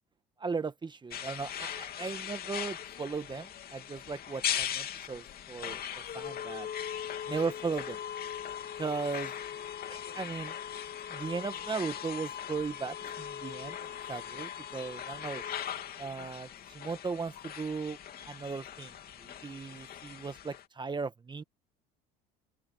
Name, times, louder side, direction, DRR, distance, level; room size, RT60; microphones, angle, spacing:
voice 1, 0.4-6.7 7.3-8.0 8.8-9.3 9.9-10.6 11.1-13.8 14.1-15.4 16.0-18.0 18.2-18.9 19.2-21.4, right 4 dB, 20° right, 1.5 m, -37 dB
sound 1, 1.1-20.7, left 9 dB, 45° left, 2.8 m, -39 dB
open air
supercardioid pair, 90°, 21 cm